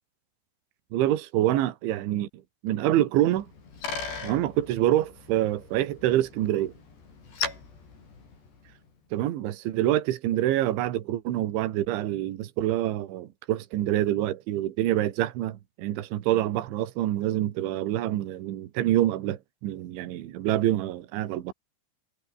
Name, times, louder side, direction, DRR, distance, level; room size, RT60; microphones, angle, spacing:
voice 1, 0.9-2.3 2.6-3.5 4.2-6.7 9.1-21.5, right 13 dB, 80° right, 4.1 m, -26 dB
Bicycle, 3.2-8.9, left 4 dB, 60° left, 9.6 m, -39 dB
omnidirectional pair, 5.4 m